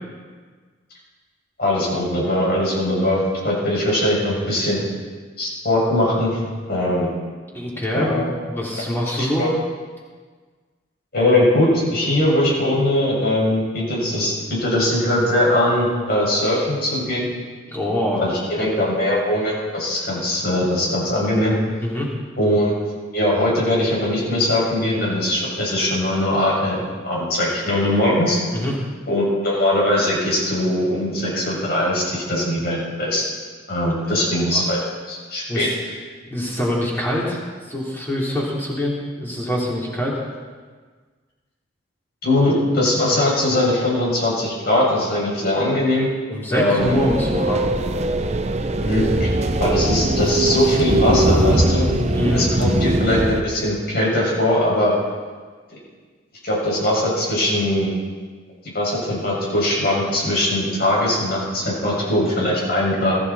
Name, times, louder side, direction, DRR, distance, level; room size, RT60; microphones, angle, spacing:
voice 1, 1.6-4.8 5.4-6.4 6.7-7.1 7.9-8.3 9.2-9.5 11.1-17.3 18.1-21.5 22.4-22.7 23.1-26.8 27.0-28.4 29.1-33.2 33.7-34.8 35.1-35.7 42.2-46.1 46.5-46.9 48.8-49.3 49.6-51.9 52.3-54.9 56.4-57.9 58.6-63.2, left 1 dB, 55° left, -4 dB, 6.2 m, -20 dB
voice 2, 7.5-9.4 17.7-18.2 18.6-18.7 21.8-22.1 28.5-28.8 34.0-34.6 35.5-35.7 36.2-37.4 37.7-40.2 46.3-47.6 52.1-52.5, left 1 dB, 10° left, -5 dB, 3.6 m, -24 dB
sound 1, 46.8-53.4, right 1 dB, 35° right, 0.8 m, -20 dB
20.5 x 14.0 x 4.3 m, 1.5 s
head